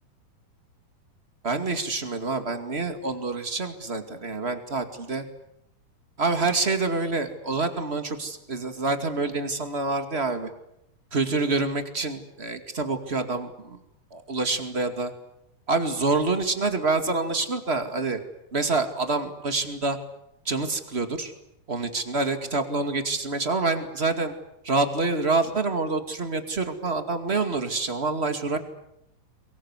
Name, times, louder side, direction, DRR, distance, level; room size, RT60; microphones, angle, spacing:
voice 1, 1.4-5.2 6.2-10.5 11.1-13.8 14.1-15.1 15.7-18.2 18.5-20.0 20.5-21.3 21.7-24.3 24.6-28.6, right 3 dB, 20° right, 8 dB, 1.9 m, -27 dB
23.0 x 23.0 x 9.7 m, 0.80 s
omnidirectional pair, 4.1 m